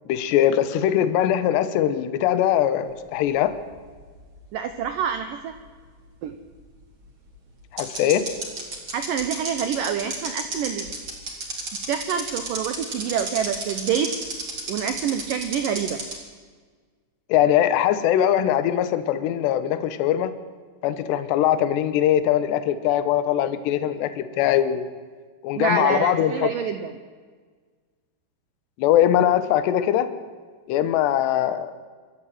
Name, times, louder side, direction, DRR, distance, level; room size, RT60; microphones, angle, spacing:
voice 1, 0.1-3.5 7.7-8.2 17.3-20.3 20.8-24.9 25.4-26.5 28.8-30.1 30.7-31.7, left 11 dB, 75° left, 11 dB, 3.1 m, -21 dB
sound 1, 3.3-4.8 5.1-5.2 7.0-7.1 7.8-16.2, right 3 dB, 30° right, 3.7 m, -31 dB
voice 2, 4.5-5.5 6.2-6.4 8.9-10.9 11.9-14.1 14.7-16.0 25.6-27.0, right 8 dB, 90° right, 9 dB, 1.9 m, -27 dB
24.5 x 13.5 x 9.2 m, 1.5 s
omnidirectional pair, 5.1 m